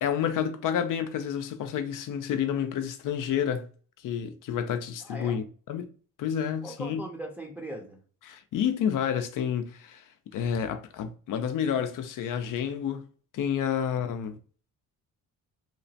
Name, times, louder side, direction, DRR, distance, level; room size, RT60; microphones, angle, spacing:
voice 1, 0.0-3.7 4.0-5.4 5.7-5.9 6.2-7.0 8.2-10.0 10.3-13.1 13.3-14.4, left 8 dB, 65° left, 0.5 m, -29 dB
voice 2, 5.0-5.4 6.6-8.0, right 1 dB, 5° right, 0.6 m, -39 dB
2.9 x 2.1 x 2.7 m
cardioid pair, 85°, 35 cm